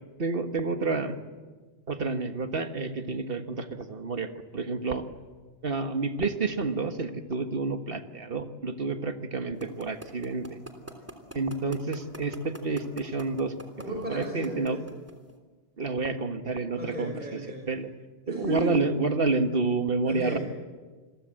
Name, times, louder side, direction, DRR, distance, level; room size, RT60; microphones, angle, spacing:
voice 1, 0.2-1.2 1.9-5.0 5.6-10.5 11.3-13.5 13.9-14.8 15.8-17.1 17.5-17.9 18.3-20.4, right 3 dB, 55° right, 7 dB, 1.8 m, -29 dB
sound 1, 9.6-15.3, right 1 dB, 15° right, 3.2 m, -41 dB
voice 2, 13.8-14.8 16.8-17.6 18.3-18.7 20.0-20.4, right 2 dB, 40° right, -1 dB, 5.9 m, -34 dB
28.5 x 22.5 x 7.8 m, 1.3 s
omnidirectional pair, 1.1 m